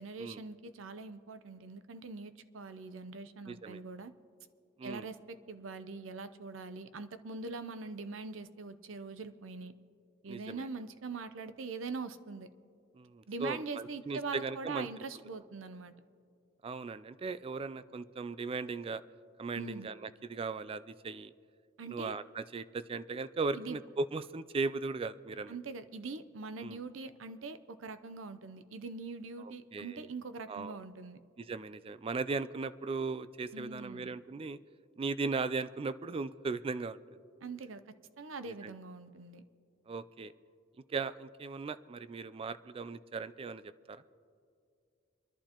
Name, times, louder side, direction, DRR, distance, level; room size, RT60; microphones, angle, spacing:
voice 1, 0.0-4.1 4.8-9.7 10.2-12.5 13.3-15.9 19.5-19.9 21.8-22.1 23.5-23.8 25.5-31.2 33.5-34.1 37.4-37.8 38.2-39.4, right 4 dB, 75° right, 11 dB, 0.6 m, -43 dB
voice 2, 3.5-3.8 4.8-5.1 10.3-10.7 12.9-14.9 16.6-19.0 19.4-21.3 21.9-25.6 26.6-26.8 29.4-30.1 30.5-30.8 31.4-34.6 35.0-37.0 38.5-38.7 39.9-40.3 40.9-44.0, right 4 dB, 30° right, 15 dB, 0.3 m, -38 dB
26.5 x 11.5 x 2.9 m, 2.3 s
head